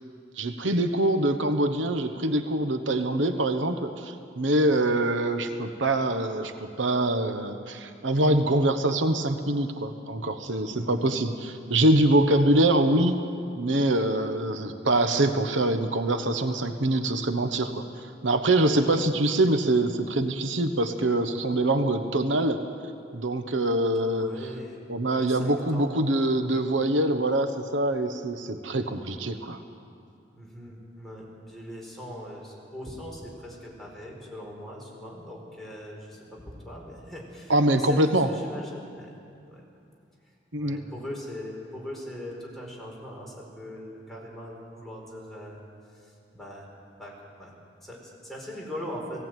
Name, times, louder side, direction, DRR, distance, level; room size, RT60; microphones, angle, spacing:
voice 1, 0.4-13.2 13.6-17.9 18.2-22.6 23.1-24.3 24.9-29.6 37.5-38.3 40.5-40.8, right 1 dB, 85° right, 8 dB, 1.1 m, -24 dB
voice 2, 10.7-11.2 18.7-19.0 24.0-24.9 25.1-26.0 26.3-26.6 30.3-39.1 39.4-39.6 40.6-45.6 45.9-46.7 47.0-47.1 47.4-47.5 47.8-49.2, equal, ahead, -3 dB, 4.5 m, -40 dB
18.0 x 17.0 x 9.2 m, 2.4 s
head